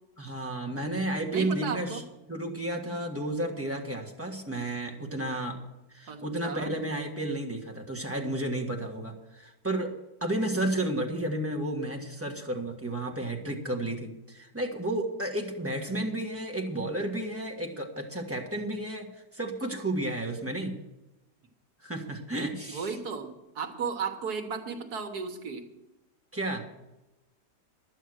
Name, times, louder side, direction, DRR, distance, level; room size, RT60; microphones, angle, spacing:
voice 1, 0.2-2.0 2.3-5.6 5.9-9.9 10.2-20.7 21.8-22.9 26.3-26.6, right 1 dB, 10° right, 1 dB, 1.3 m, -32 dB
voice 2, 1.3-2.0 6.1-6.7 22.7-25.7, right 5 dB, 65° right, 5 dB, 1.7 m, -35 dB
11.5 x 9.3 x 6.3 m, 0.96 s
omnidirectional pair, 1.8 m